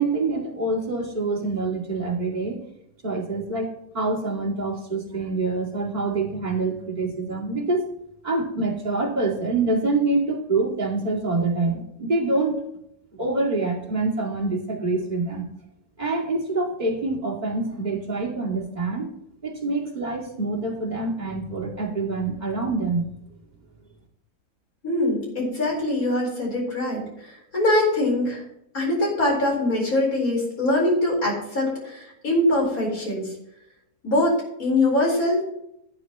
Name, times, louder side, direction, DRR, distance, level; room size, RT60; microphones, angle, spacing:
voice 1, 0.0-2.6 3.0-7.9 8.2-12.6 13.2-15.4 16.0-19.1 19.4-23.1, right 3 dB, 30° right, -4 dB, 2.5 m, -26 dB
voice 2, 24.8-28.4 28.7-33.3 34.0-35.4, left 1 dB, 70° left, -3 dB, 4.8 m, -23 dB
16.5 x 9.2 x 3.0 m, 0.79 s
omnidirectional pair, 1.5 m